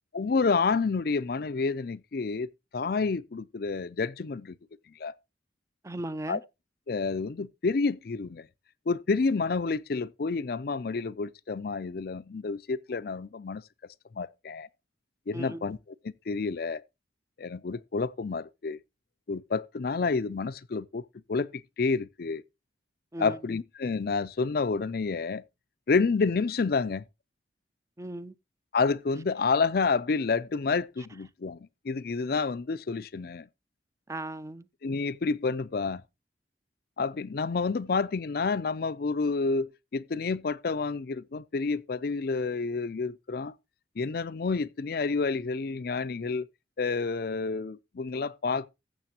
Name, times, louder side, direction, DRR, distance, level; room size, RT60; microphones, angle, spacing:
voice 1, 0.1-4.6 5.0-5.1 6.3-6.4 6.9-8.5 8.9-13.6 14.1-14.7 15.3-15.8 16.0-16.8 17.4-18.8 19.3-22.4 23.2-25.4 25.9-27.0 28.7-33.5 34.8-36.0 37.0-43.5 44.0-46.5 46.8-48.7, left 4 dB, 55° left, 0.5 m, -29 dB
voice 2, 5.8-6.4 15.3-15.7 23.1-23.4 28.0-28.3 34.1-34.7, right 1 dB, 15° right, 0.5 m, -37 dB
15.0 x 7.3 x 2.8 m
head